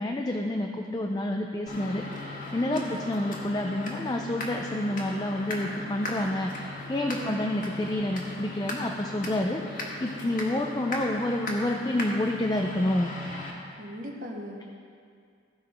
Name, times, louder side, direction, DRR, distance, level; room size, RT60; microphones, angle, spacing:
voice 1, 0.0-13.1, left 1 dB, 20° left, 2 dB, 0.4 m, -29 dB
sound 1, 1.7-13.5, left 2 dB, 45° left, 1.5 m, -37 dB
voice 2, 2.7-3.0 7.2-7.4 13.8-14.6, equal, 45° right, 0 dB, 1.0 m, -38 dB
15.5 x 5.6 x 4.3 m, 2.3 s
head